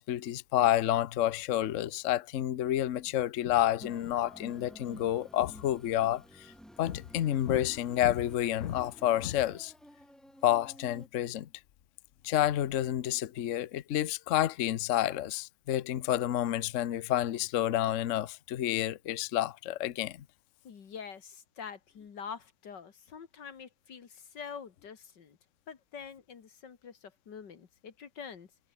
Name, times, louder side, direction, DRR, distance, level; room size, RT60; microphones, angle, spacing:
voice 1, 0.0-6.5 6.8-9.7 10.4-11.5 12.2-20.2, left 12 dB, 90° left, 0.6 m, -29 dB
sound 1, 3.8-11.1, equal, ahead, 7.1 m, -52 dB
voice 2, 20.6-25.4 25.7-28.5, left 6 dB, 55° left, 2.3 m, -45 dB
omnidirectional pair, 2.4 m